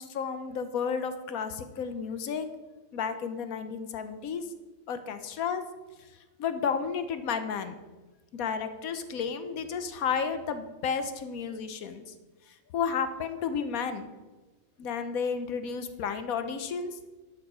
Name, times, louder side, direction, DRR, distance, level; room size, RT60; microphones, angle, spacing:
voice 1, 0.0-2.5 2.9-4.4 4.9-5.6 6.4-7.7 8.3-12.1 12.5-14.1 14.8-17.0, left 6 dB, 90° left, 10 dB, 1.3 m, -32 dB
11.5 x 7.3 x 5.0 m, 1.2 s
omnidirectional pair, 1.4 m